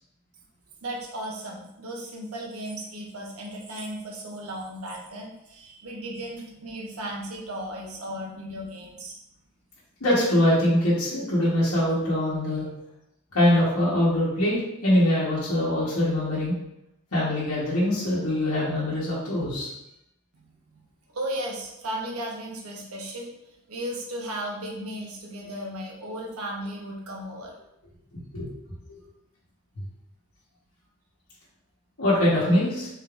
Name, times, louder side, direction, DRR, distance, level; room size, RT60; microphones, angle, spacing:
voice 1, 0.8-9.1 20.3-20.8 21.1-23.3 23.7-27.5, right 1 dB, 85° right, -1 dB, 0.9 m, -35 dB
voice 2, 10.0-12.6 13.3-16.5 17.1-19.7 28.3-28.5 28.9-29.0 32.0-32.9, left 1 dB, 85° left, -9 dB, 1.3 m, -23 dB
4.0 x 3.3 x 2.5 m, 0.84 s
head